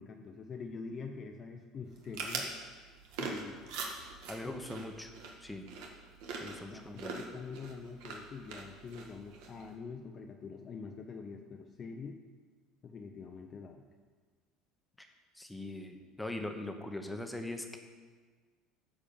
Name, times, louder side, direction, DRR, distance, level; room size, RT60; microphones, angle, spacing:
voice 1, 0.0-2.5 3.2-3.7 4.4-4.8 6.7-12.2 12.8-13.8, left 5 dB, 35° left, 2 dB, 0.7 m, -45 dB
sound 1, 1.8-9.7, right 4 dB, 75° right, 1.6 m, -43 dB
voice 2, 4.3-5.1 5.4-5.6 6.4-7.2 15.3-17.8, left 1 dB, 5° left, 4 dB, 1.0 m, -41 dB
10.0 x 5.2 x 7.1 m, 1.5 s
supercardioid pair, 115°, 0 cm